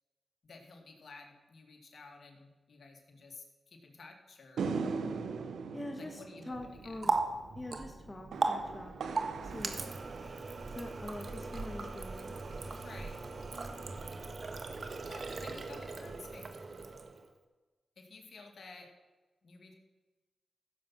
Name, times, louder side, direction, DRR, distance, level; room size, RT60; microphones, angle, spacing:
voice 1, 0.4-4.7 6.0-6.9 12.8-13.2 15.0-16.5 18.0-18.9 19.4-19.7, left 3 dB, 65° left, 3 dB, 2.3 m, -53 dB
sound 1, 4.6-11.1, right 5 dB, 85° right, 0.8 m, -40 dB
voice 2, 5.7-7.1 7.5-8.9 9.4-9.9 10.7-12.3, left 1 dB, 30° left, 4 dB, 1.6 m, -44 dB
Water tap faucet, 6.5-17.3, right 3 dB, 55° right, 1.4 m, -38 dB
15.5 x 7.4 x 6.0 m, 1.2 s
cardioid pair, 45°, 0 cm